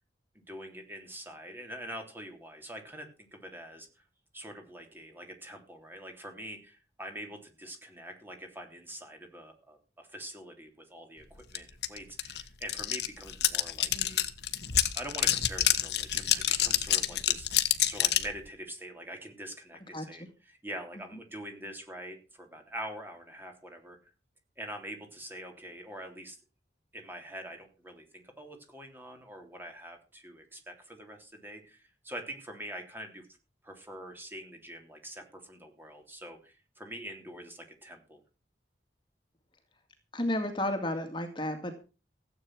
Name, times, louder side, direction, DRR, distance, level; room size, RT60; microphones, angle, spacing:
voice 1, 0.5-4.0 4.3-14.2 14.9-24.0 24.6-26.4 26.9-33.3 33.6-38.2, right 1 dB, 10° right, 4 dB, 3.3 m, -44 dB
sound 1, 11.5-11.6 11.8-18.3, left 12 dB, 65° left, 1.5 m, -27 dB
voice 2, 40.1-41.7, left 1 dB, 25° left, 6 dB, 2.2 m, -31 dB
16.0 x 8.9 x 6.1 m, 0.33 s
head